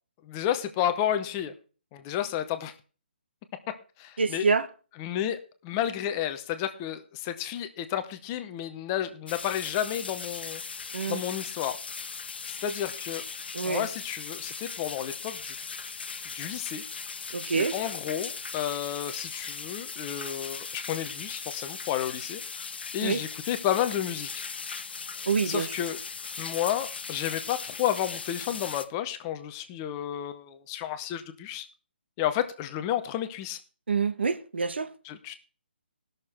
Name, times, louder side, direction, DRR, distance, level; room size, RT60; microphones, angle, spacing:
voice 1, 0.2-1.5 1.9-2.7 4.0-4.4 5.0-5.4 5.6-10.6 11.1-11.8 12.5-13.2 13.6-15.5 16.3-16.8 17.5-22.6 22.9-24.4 25.1-26.0 26.4-31.7 32.2-33.6 35.0-35.3, left 11 dB, 20° left, 0.7 m, -31 dB
voice 2, 4.2-4.7 10.9-11.2 13.5-13.9 17.3-17.7 23.0-23.2 25.3-25.7 33.9-34.9, right 5 dB, 80° right, 1.1 m, -26 dB
sound 1, 9.3-28.9, left 5 dB, 70° left, 1.1 m, -38 dB
16.5 x 6.6 x 4.3 m
hypercardioid pair, 165°, 6 cm